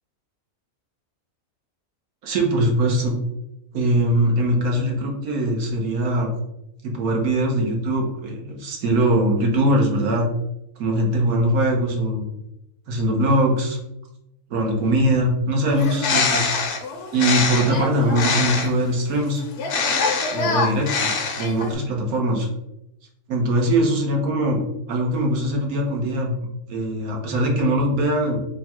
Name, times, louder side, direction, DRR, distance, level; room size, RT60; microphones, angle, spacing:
voice 1, 2.2-3.2 3.7-6.3 6.8-10.3 10.8-12.2 12.9-13.8 14.5-16.5 17.1-19.4 20.3-22.5 23.3-24.6 24.9-26.3 26.7-28.4, right 1 dB, 85° right, 0 dB, 1.3 m, -21 dB
Bird, 15.7-18.9 19.6-21.8, left 4 dB, 65° left, 0.9 m, -24 dB
3.6 x 2.3 x 4.3 m, 0.84 s
omnidirectional pair, 1.5 m